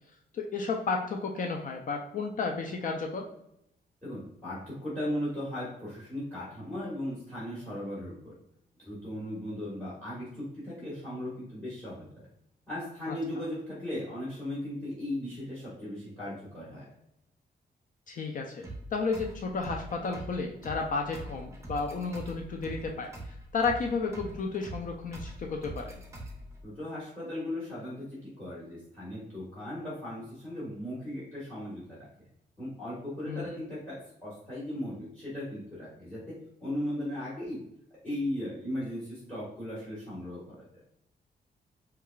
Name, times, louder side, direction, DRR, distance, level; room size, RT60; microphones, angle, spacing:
voice 1, 0.3-3.2 13.1-13.2 18.1-23.1 23.5-25.9 33.3-33.4, left 4 dB, 50° left, 2 dB, 0.4 m, -32 dB
voice 2, 4.0-8.3 8.8-12.3 12.7-16.8 26.6-32.1 32.6-36.2 36.6-37.6 38.0-40.6, left 1 dB, 10° left, -8 dB, 1.4 m, -37 dB
sound 1, 18.6-26.6, right 1 dB, 15° right, 0.6 m, -43 dB
4.7 x 2.3 x 2.3 m, 0.78 s
wide cardioid pair, 150°, 18 cm